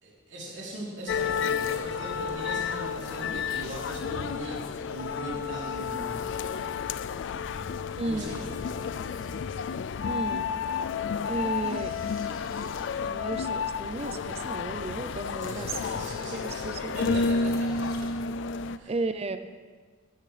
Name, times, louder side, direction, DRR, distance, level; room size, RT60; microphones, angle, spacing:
voice 1, 0.0-6.3 8.0-8.5 15.3-16.7 16.9-18.1 18.7-18.9, right 1 dB, 60° right, -6 dB, 3.4 m, -39 dB
sound 1, 1.1-18.8, left 5 dB, 60° left, 0.3 m, -31 dB
sound 2, 1.1-18.4, equal, 10° left, 1.7 m, -52 dB
sound 3, 1.3-2.0 3.3-4.4 5.4-7.2 7.9-9.8 11.2-16.1 17.0-18.7, left 3 dB, 85° left, 1.3 m, -49 dB
voice 2, 8.0-8.4 10.1-10.5 11.2-12.3 13.0-17.0 18.9-19.4, right 3 dB, 30° right, 10 dB, 0.4 m, -34 dB
14.5 x 12.0 x 3.3 m, 1.5 s
head